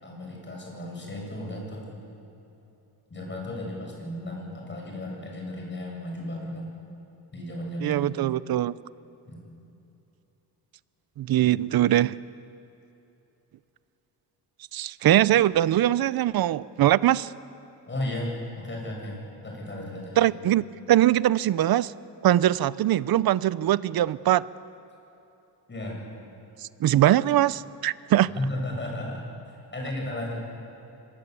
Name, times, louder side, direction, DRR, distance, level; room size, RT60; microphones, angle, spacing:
voice 1, 0.0-1.9 3.1-6.7 7.3-8.1 9.3-9.4 17.9-20.4 25.7-26.0 28.3-30.3, left 1 dB, 25° left, -1 dB, 8.0 m, -34 dB
voice 2, 7.8-8.7 11.2-12.2 14.7-17.3 20.2-21.9 22.2-24.5 26.8-28.3, right 13 dB, 60° right, 18 dB, 0.6 m, -22 dB
26.0 x 21.0 x 8.4 m, 3.0 s
cardioid pair, 130°, 41 cm